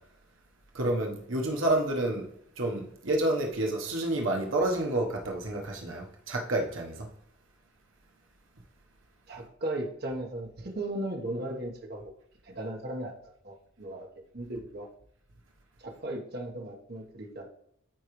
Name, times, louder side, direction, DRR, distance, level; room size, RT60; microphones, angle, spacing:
voice 1, 0.7-2.3 2.6-7.1, right 1 dB, 70° right, 1 dB, 1.1 m, -29 dB
voice 2, 9.3-12.0 12.4-14.9 15.8-17.5, right 1 dB, 50° right, 1 dB, 1.2 m, -37 dB
13.5 x 4.7 x 3.1 m, 0.72 s
head